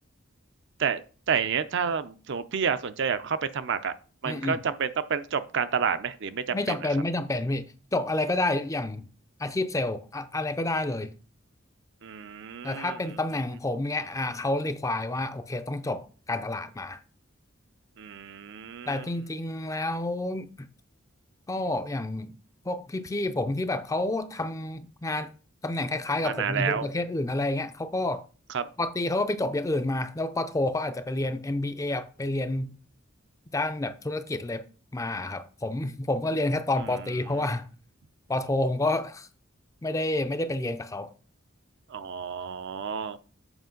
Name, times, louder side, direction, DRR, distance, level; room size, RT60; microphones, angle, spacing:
voice 1, 1.3-3.9 4.2-6.8 12.0-13.0 18.0-19.1 26.2-26.9 28.5-28.7 41.9-43.2, right 6 dB, 60° right, 0.6 m, -29 dB
voice 2, 4.2-4.6 6.5-9.0 9.4-11.1 12.6-17.0 18.9-20.7 21.5-22.3 22.7-25.3 25.6-28.2 28.8-32.8 33.5-34.6 34.9-37.7 38.3-39.3 39.8-41.1, left 2 dB, 15° left, 0.5 m, -29 dB
8.0 x 5.1 x 3.8 m
head